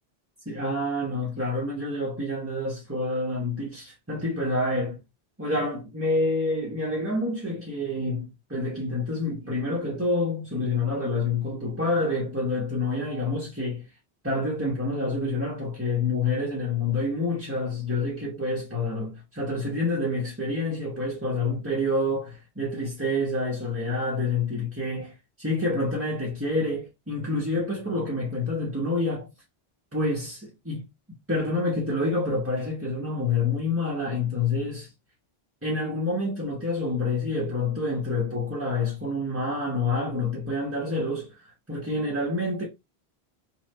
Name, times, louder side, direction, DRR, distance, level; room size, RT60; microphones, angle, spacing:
voice 1, 0.5-5.0 5.4-13.8 14.2-29.3 29.9-30.8 31.3-34.9 35.6-42.7, left 2 dB, 15° right, 0.9 m, -28 dB
3.2 x 2.8 x 4.1 m
omnidirectional pair, 1.1 m